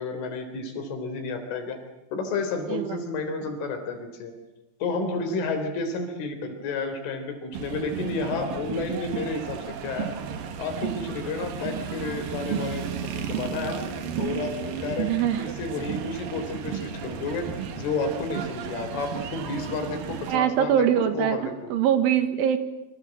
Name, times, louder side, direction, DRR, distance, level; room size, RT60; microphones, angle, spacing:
voice 1, 0.0-1.8 2.1-4.3 4.8-10.1 10.6-13.8 14.2-15.1 15.4-17.5 17.7-20.8 21.1-21.4, left 3 dB, 70° left, 7 dB, 6.0 m, -31 dB
sound 1, 7.5-20.4, right 7 dB, 55° right, 2.8 m, -33 dB
voice 2, 15.0-15.5 20.3-22.6, right 9 dB, 75° right, 10 dB, 3.8 m, -23 dB
27.5 x 25.5 x 7.8 m, 0.93 s
omnidirectional pair, 6.0 m